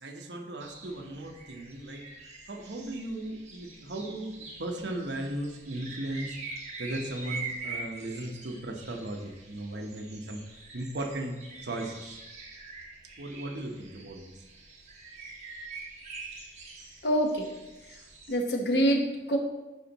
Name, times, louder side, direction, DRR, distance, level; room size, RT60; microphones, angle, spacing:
voice 1, 0.0-2.0 2.5-6.4 6.8-10.4 10.7-12.2 13.2-14.4, right 1 dB, 80° right, 3 dB, 1.0 m, -37 dB
sound 1, 0.6-18.3, right 4 dB, 40° right, 1.3 m, -44 dB
voice 2, 17.0-17.5 17.9-18.0 18.3-19.4, equal, 65° left, 2 dB, 1.0 m, -26 dB
10.5 x 4.4 x 3.0 m, 1.1 s
head